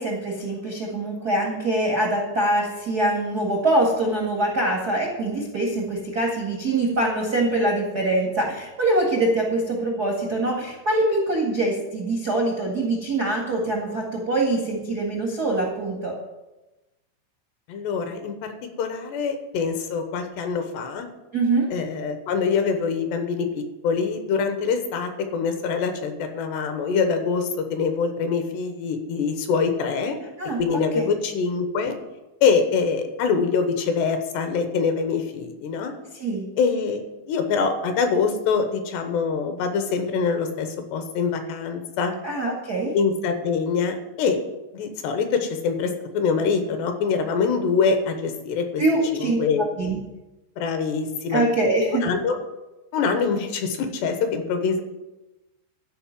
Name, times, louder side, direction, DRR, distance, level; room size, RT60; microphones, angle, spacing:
voice 1, 0.0-16.1 21.3-21.7 30.4-30.6 30.9-31.1 36.1-36.4 42.2-42.9 48.8-49.4 49.8-50.0 51.3-52.0, right 2 dB, 85° right, -1 dB, 0.8 m, -24 dB
voice 2, 17.7-18.5 18.8-21.1 21.7-30.2 30.6-31.9 32.4-35.9 36.6-37.0 37.3-42.2 42.9-44.4 44.7-48.8 49.1-49.6 50.6-51.5 52.0-52.4 52.9-54.8, left 5 dB, 75° left, 7 dB, 3.0 m, -24 dB
13.0 x 5.3 x 9.0 m, 1.0 s
omnidirectional pair, 5.3 m